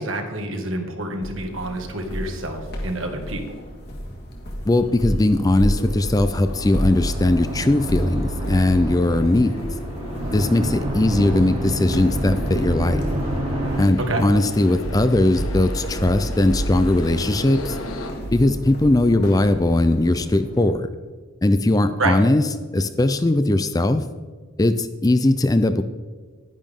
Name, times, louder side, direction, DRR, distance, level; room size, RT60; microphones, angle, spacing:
voice 1, 0.0-3.4 14.0-14.2 22.0-22.2, right 2 dB, 70° right, 3 dB, 1.8 m, -27 dB
sound 1, 1.2-20.7, equal, 50° left, 1.9 m, -31 dB
sound 2, 4.6-18.1, left 1 dB, 85° left, 1.6 m, -37 dB
voice 2, 4.7-9.6 10.3-13.0 13.8-17.7 18.3-20.9 21.4-22.4 22.7-24.0 24.6-25.8, left 1 dB, 15° left, 10 dB, 0.4 m, -19 dB
sound 3, 6.3-13.8, right 1 dB, 30° right, 1.8 m, -28 dB
10.5 x 10.5 x 3.6 m, 1.5 s
head